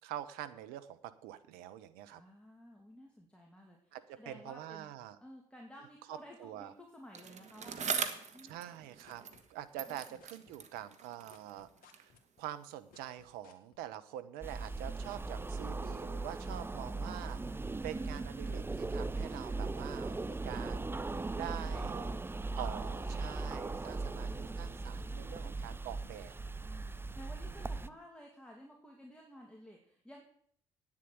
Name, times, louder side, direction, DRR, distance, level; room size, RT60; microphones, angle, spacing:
voice 1, 0.0-2.2 3.9-5.2 6.1-6.7 8.4-9.2 9.5-22.2 22.6-26.3, right 12 dB, 75° right, 12 dB, 1.0 m, -45 dB
voice 2, 2.1-4.9 5.2-8.6 9.9-10.2 16.4-17.2 21.6-23.5 23.9-24.4 25.0-25.6 26.6-30.2, equal, 5° left, 0 dB, 2.7 m, -55 dB
Bicycle, 7.1-9.5 9.8-12.2 12.9-13.0, right 6 dB, 45° right, 1.6 m, -41 dB
sound 1, 8.5-9.9 10.2-13.8, left 8 dB, 65° left, 1.8 m, -62 dB
sound 2, 14.4-27.9, right 3 dB, 15° right, 0.6 m, -39 dB
9.4 x 7.5 x 9.2 m, 0.63 s
hypercardioid pair, 60°, 16 cm